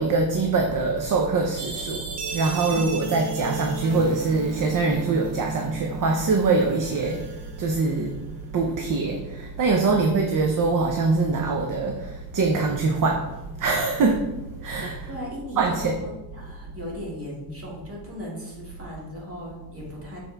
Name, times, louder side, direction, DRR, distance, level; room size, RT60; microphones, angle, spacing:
voice 1, 0.0-8.2 8.5-14.3 14.6-15.1 15.6-16.0, right 3 dB, 50° right, 2 dB, 0.6 m, -23 dB
sound 1, 1.6-8.3, right 3 dB, 75° right, 0.9 m, -36 dB
voice 2, 2.7-3.1 9.9-10.1 15.1-20.2, equal, 30° right, -4 dB, 2.2 m, -37 dB
6.8 x 4.3 x 3.4 m, 1.0 s
wide cardioid pair, 135°, 42 cm